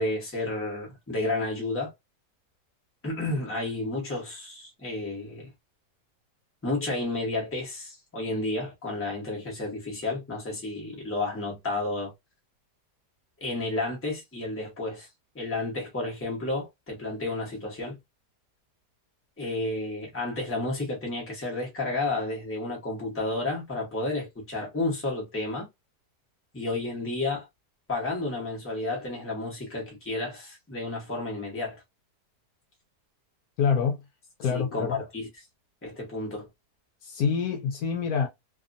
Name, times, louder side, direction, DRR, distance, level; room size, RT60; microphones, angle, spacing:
voice 1, 0.0-1.9 3.0-5.5 6.6-12.1 13.4-15.1 15.3-18.0 19.4-25.7 26.5-27.5 27.9-31.8 34.5-35.3 35.8-36.5, left 2 dB, 10° left, 0.8 m, -31 dB
voice 2, 33.6-34.0 34.4-35.0 37.0-38.3, left 6 dB, 75° left, 1.0 m, -26 dB
2.8 x 2.4 x 2.5 m
omnidirectional pair, 1.8 m